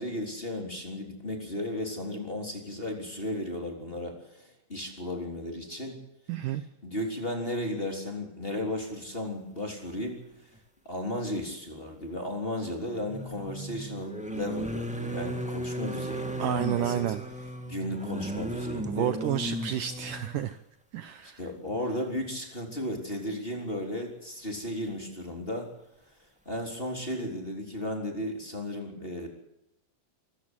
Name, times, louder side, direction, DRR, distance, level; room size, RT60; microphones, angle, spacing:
voice 1, 0.0-6.0 6.8-10.2 10.8-17.0 17.6-19.2 21.2-25.7 26.4-29.3, left 1 dB, 15° left, 2 dB, 3.4 m, -35 dB
voice 2, 6.3-6.6 16.4-17.2 18.9-20.6 20.9-21.4, right 11 dB, 70° right, 10 dB, 2.2 m, -30 dB
sound 1, 10.5-10.6 12.8-20.5 21.7-21.8 22.2-22.3, right 1 dB, 5° right, 0.9 m, -35 dB
25.0 x 15.0 x 8.1 m, 0.84 s
omnidirectional pair, 4.4 m